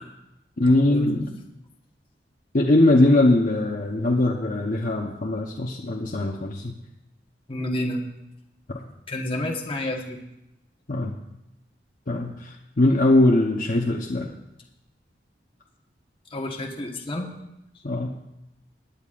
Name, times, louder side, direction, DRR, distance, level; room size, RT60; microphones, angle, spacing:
voice 1, 0.6-1.3 2.5-6.7 8.7-8.8 10.9-11.1 12.1-14.3 17.8-18.2, left 2 dB, 50° left, -2 dB, 1.0 m, -21 dB
voice 2, 7.5-8.0 9.1-10.2 16.3-17.3, left 1 dB, 30° left, 0 dB, 1.3 m, -29 dB
21.0 x 10.5 x 2.5 m, 0.88 s
head